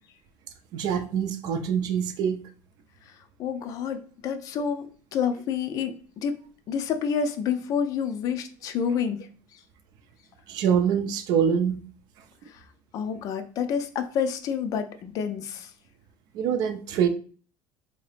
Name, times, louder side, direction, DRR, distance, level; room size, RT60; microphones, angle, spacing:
voice 1, 0.7-2.4 10.5-11.8 16.3-17.1, right 8 dB, 55° right, 9 dB, 0.5 m, -24 dB
voice 2, 3.4-6.4 6.7-9.2 9.5-9.6 12.5-12.6 12.9-15.7, left 7 dB, 45° left, 8 dB, 0.4 m, -29 dB
3.6 x 2.8 x 3.3 m, 0.42 s
cardioid pair, 140°, 8 cm